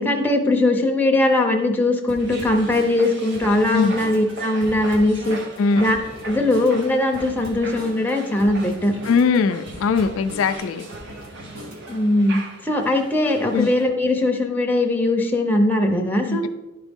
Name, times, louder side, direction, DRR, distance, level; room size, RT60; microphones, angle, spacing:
voice 1, 0.0-5.4 5.8-6.0 6.2-8.9 11.9-16.4, left 1 dB, 10° left, 1 dB, 0.6 m, -20 dB
sound 1, 2.1-12.0, equal, 75° right, 1.5 m, -40 dB
sound 2, 2.2-13.8, right 2 dB, 50° right, 0.8 m, -39 dB
voice 2, 9.0-10.9 13.5-13.7 16.3-16.5, left 5 dB, 65° left, 9 dB, 0.3 m, -20 dB
11.0 x 4.0 x 3.5 m, 1.1 s
head